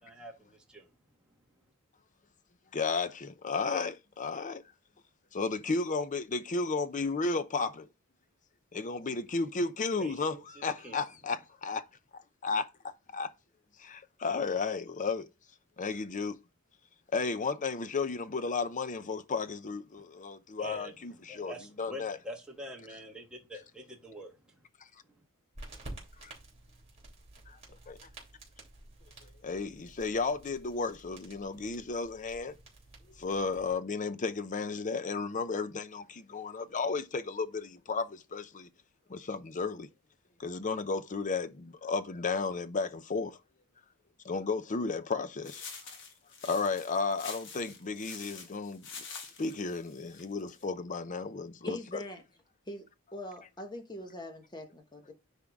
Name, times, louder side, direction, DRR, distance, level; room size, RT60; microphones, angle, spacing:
voice 1, 0.0-0.9 10.0-11.0 20.6-20.9 21.2-24.7 25.1-25.2, equal, 5° right, 1.4 m, -45 dB
voice 2, 2.7-4.6 5.3-7.9 8.7-11.8 12.1-12.7 13.1-13.3 13.8-15.3 15.8-16.4 17.1-22.2 26.2-26.3 27.5-27.6 27.9-28.0 29.4-32.5 33.2-38.7 39.1-39.9 40.4-43.4 44.2-45.7 46.4-48.9 49.2-52.0, left 4 dB, 35° left, 0.6 m, -33 dB
sound 1, 25.5-33.7, right 2 dB, 30° right, 2.9 m, -51 dB
sound 2, 45.4-50.6, left 5 dB, 60° left, 1.4 m, -46 dB
voice 3, 51.6-52.2 52.7-52.9 53.1-55.1, left 1 dB, 20° left, 1.2 m, -42 dB
9.8 x 3.7 x 3.6 m
head